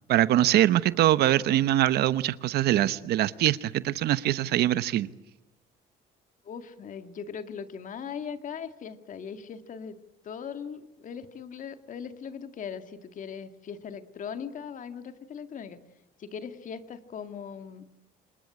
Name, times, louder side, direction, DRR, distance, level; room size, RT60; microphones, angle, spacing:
voice 1, 0.1-5.1, right 13 dB, 70° right, 1.0 m, -23 dB
voice 2, 6.4-10.0 10.2-15.8 16.2-17.9, left 7 dB, 50° left, 2.1 m, -39 dB
26.5 x 21.0 x 8.7 m
cardioid pair, 110°, 17 cm